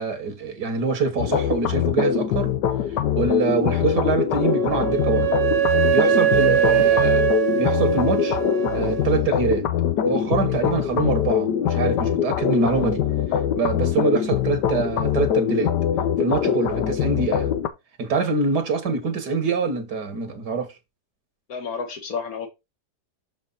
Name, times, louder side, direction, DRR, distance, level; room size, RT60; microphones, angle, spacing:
voice 1, 0.0-2.5 3.1-5.3 5.9-7.3 7.6-8.4 8.7-9.6 10.0-13.0 13.6-15.7 16.2-17.5 18.0-20.7, right 4 dB, 75° right, 2.1 m, -24 dB
sound 1, 1.2-17.7, left 9 dB, 85° left, 1.4 m, -23 dB
Wind instrument woodwind instrument, 4.4-9.1, right 11 dB, 55° right, 1.1 m, -22 dB
voice 2, 21.5-22.5, left 5 dB, 60° left, 1.8 m, -30 dB
6.5 x 5.0 x 4.0 m
omnidirectional pair, 1.8 m